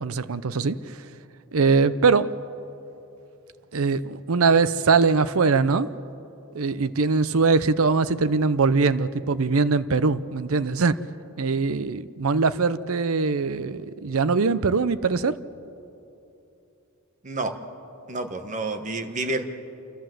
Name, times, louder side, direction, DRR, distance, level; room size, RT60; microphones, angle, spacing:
voice 1, 0.0-1.0 1.5-2.3 3.7-5.9 6.5-11.0 11.4-15.3, right 4 dB, 75° right, 15 dB, 0.6 m, -22 dB
voice 2, 17.2-17.6 18.1-19.4, right 2 dB, 35° right, 6 dB, 1.3 m, -29 dB
28.5 x 13.5 x 7.7 m, 2.9 s
head